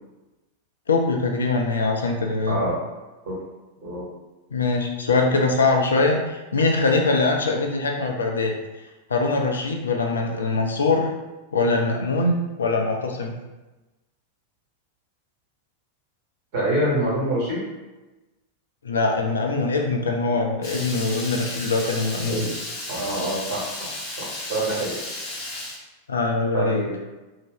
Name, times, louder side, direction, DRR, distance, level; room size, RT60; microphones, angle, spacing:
voice 1, 0.9-2.6 4.5-8.5 9.1-11.1 11.5-13.3 18.8-22.5 26.1-26.8, left 3 dB, 70° left, 2 dB, 0.4 m, -22 dB
voice 2, 2.5-2.8 3.2-3.4 3.8-4.1 16.5-17.7 22.3-22.6 22.9-23.9 24.2-25.0 26.5-27.0, right 1 dB, 50° right, -5 dB, 1.3 m, -26 dB
Water tap faucet / Liquid, 20.6-25.8, left 1 dB, 35° left, 0.9 m, -33 dB
2.7 x 2.0 x 3.3 m, 1.1 s
figure-of-eight pair, 90°, 0 cm